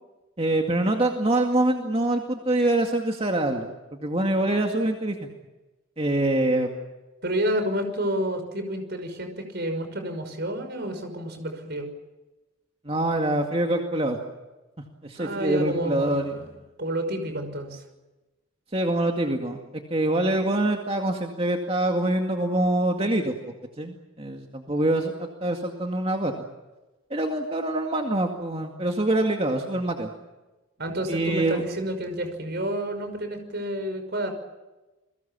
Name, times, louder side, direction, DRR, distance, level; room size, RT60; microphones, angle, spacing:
voice 1, 0.4-5.3 6.0-6.7 12.9-14.2 15.0-16.3 18.7-19.6 19.9-23.3 23.8-26.4 27.1-30.1 31.1-31.6, right 1 dB, 25° right, 3 dB, 2.2 m, -25 dB
voice 2, 7.2-11.9 15.1-16.5 16.8-17.8 30.8-34.3, right 1 dB, 50° right, 7 dB, 5.8 m, -29 dB
30.0 x 22.0 x 7.4 m, 1.1 s
head